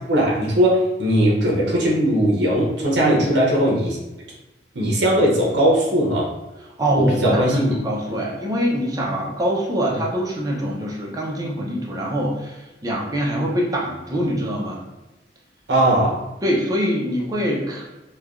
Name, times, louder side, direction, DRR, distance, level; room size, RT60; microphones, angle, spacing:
voice 1, 0.1-4.0 4.7-6.3 7.0-7.7 15.7-16.2, right 1 dB, 65° right, -3 dB, 0.7 m, -19 dB
voice 2, 6.8-14.8 16.4-17.9, equal, 20° right, -2 dB, 0.5 m, -24 dB
3.1 x 2.2 x 2.3 m, 1.0 s
head